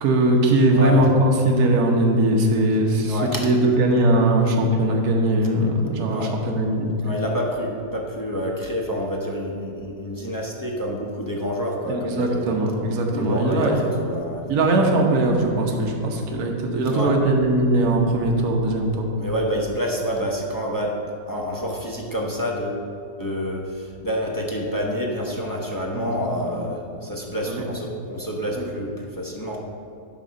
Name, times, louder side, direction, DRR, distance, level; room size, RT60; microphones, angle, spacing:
voice 1, 0.0-6.9 11.9-13.8 14.5-19.1 25.9-26.6 27.5-27.6 28.6-28.7, right 1 dB, 60° right, 0 dB, 1.4 m, -20 dB
voice 2, 0.7-1.0 3.0-3.4 6.1-6.3 7.0-12.5 13.1-14.4 16.9-17.1 19.2-20.9 21.3-22.8 23.2-29.6, equal, 20° left, -3 dB, 0.6 m, -28 dB
11.5 x 4.1 x 6.4 m, 2.5 s
omnidirectional pair, 1.9 m